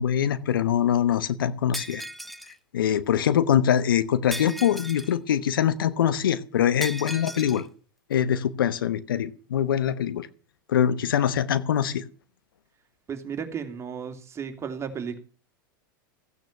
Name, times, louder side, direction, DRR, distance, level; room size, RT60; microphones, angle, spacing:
voice 1, 0.0-2.0 2.7-7.7 8.1-10.3 10.7-12.0, left 9 dB, 75° left, 14 dB, 1.1 m, -23 dB
Shatter, 1.7-2.6 4.3-5.2 6.8-7.6, equal, ahead, 1.1 m, -37 dB
voice 2, 13.1-15.2, right 7 dB, 25° right, 5 dB, 2.9 m, -34 dB
15.5 x 9.2 x 5.9 m, 0.39 s
hypercardioid pair, 100°, 12 cm